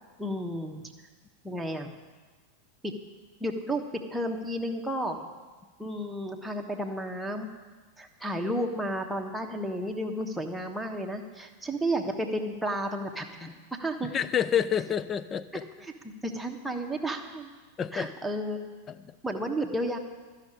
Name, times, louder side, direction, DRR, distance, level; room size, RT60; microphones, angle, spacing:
voice 1, 0.2-0.8 1.4-1.9 2.8-2.9 3.4-3.8 4.1-5.3 5.8-7.5 8.0-14.1 15.8-17.5 17.9-18.7 19.2-20.0, right 1 dB, 5° right, 2 dB, 1.3 m, -32 dB
voice 2, 14.0-15.6 17.8-18.1 18.9-19.1, left 8 dB, 25° left, 15 dB, 0.5 m, -29 dB
13.0 x 6.6 x 9.6 m, 1.4 s
figure-of-eight pair, 90°, 0 cm